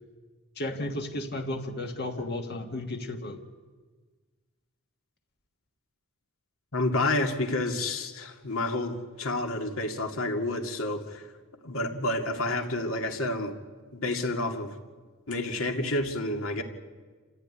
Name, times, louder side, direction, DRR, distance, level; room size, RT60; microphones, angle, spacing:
voice 1, 0.5-3.4, left 1 dB, 45° left, 4 dB, 1.5 m, -33 dB
voice 2, 6.7-11.2 11.6-13.5 13.9-14.7 15.3-16.6, left 2 dB, 65° left, 4 dB, 2.4 m, -29 dB
28.0 x 15.0 x 9.7 m, 1.4 s
head